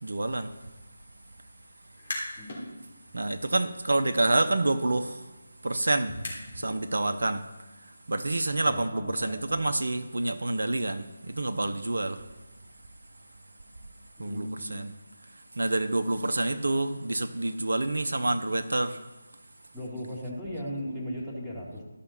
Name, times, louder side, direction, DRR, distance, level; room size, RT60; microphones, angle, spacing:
voice 1, 0.0-0.6 3.1-5.3 5.6-6.2 6.5-12.3 14.2-15.0 15.2-19.0, right 2 dB, 65° right, 0.6 m, -28 dB
sound 1, 1.8-2.6 3.0-6.8, left 1 dB, 45° left, 3.3 m, -41 dB
voice 2, 8.6-9.7 14.2-14.8 19.7-21.8, equal, 5° right, 1.8 m, -37 dB
12.5 x 5.7 x 4.2 m
figure-of-eight pair, 155°, 0 cm